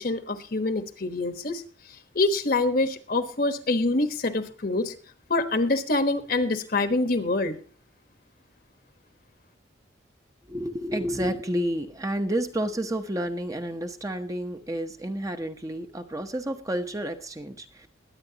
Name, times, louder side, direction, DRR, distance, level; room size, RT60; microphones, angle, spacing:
voice 1, 0.0-1.6 2.1-4.9 5.3-7.6, left 2 dB, 50° left, 9 dB, 1.2 m, -25 dB
voice 2, 10.5-17.9, right 1 dB, 15° right, 6 dB, 0.9 m, -30 dB
21.5 x 9.1 x 2.9 m, 0.42 s
head